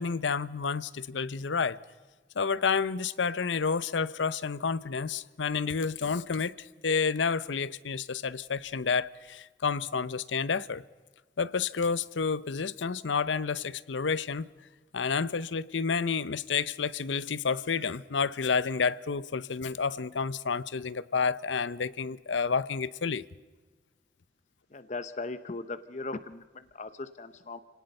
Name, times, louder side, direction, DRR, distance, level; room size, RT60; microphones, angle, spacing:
voice 1, 0.0-1.8 2.4-10.8 11.4-14.5 14.9-23.3, left 5 dB, 75° left, 0.7 m, -30 dB
voice 2, 24.7-27.6, left 3 dB, 40° left, 0.7 m, -38 dB
30.0 x 18.5 x 5.4 m
head